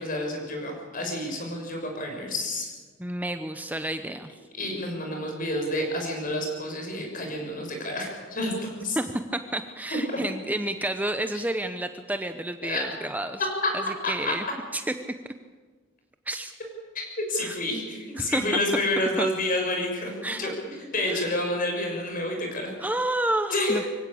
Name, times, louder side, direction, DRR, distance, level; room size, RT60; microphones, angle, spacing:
voice 1, 0.0-2.7 4.6-9.0 12.6-12.8 17.2-20.1 20.4-22.7 23.5-23.9, left 1 dB, 45° left, 2 dB, 6.6 m, -29 dB
voice 2, 3.0-4.3 9.0-13.4 13.7-14.5 14.7-14.9 16.3-16.5 17.4-17.6 18.2-18.8 19.2-19.3 20.2-20.5 21.1-21.2 22.8-23.8, right 1 dB, 10° right, 8 dB, 0.8 m, -30 dB
24.5 x 16.5 x 8.6 m, 1.4 s
head